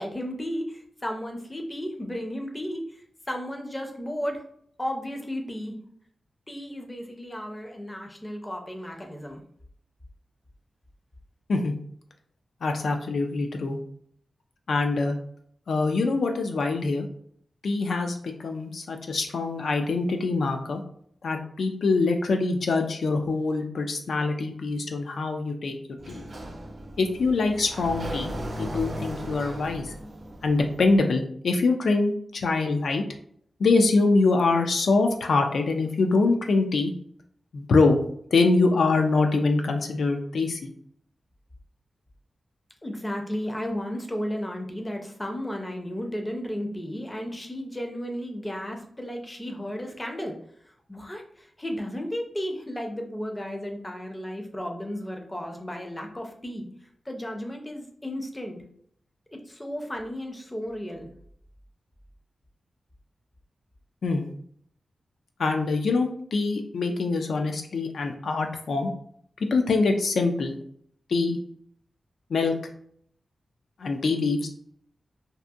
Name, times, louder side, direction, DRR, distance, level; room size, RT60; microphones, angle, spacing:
voice 1, 0.0-3.0 3.3-4.4 4.8-5.8 6.5-9.4 42.8-50.4 50.9-56.7 57.1-58.6 59.3-61.1, equal, 15° left, 2 dB, 0.4 m, -34 dB
voice 2, 12.6-13.8 14.7-15.1 15.7-17.1 17.6-20.8 21.2-25.8 26.1-26.2 27.0-28.3 28.6-29.9 30.4-33.0 33.6-36.9 37.5-38.0 38.3-40.7 64.0-64.3 65.4-68.9 69.5-70.6 71.1-71.4 72.3-72.6 73.8-74.5, left 3 dB, 80° left, 4 dB, 0.3 m, -24 dB
Sliding door, 26.0-31.0, right 1 dB, 50° right, 0.5 m, -36 dB
2.7 x 2.5 x 2.3 m, 0.64 s
wide cardioid pair, 125°, 0 cm